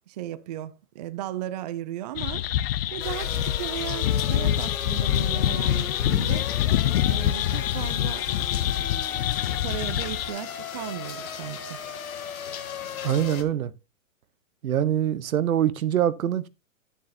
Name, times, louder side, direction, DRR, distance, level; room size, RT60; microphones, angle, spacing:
voice 1, 0.1-2.5 2.9-6.5 7.0-8.3 9.6-11.8, right 12 dB, 30° right, 0.4 m, -36 dB
sound 1, 2.2-10.3, left 12 dB, 45° left, 0.6 m, -25 dB
sound 2, 3.0-13.4, left 7 dB, 80° left, 1.8 m, -36 dB
voice 2, 13.0-13.7 14.6-16.5, right 10 dB, 85° right, 1.0 m, -24 dB
10.5 x 7.4 x 2.7 m
hypercardioid pair, 150°, 41 cm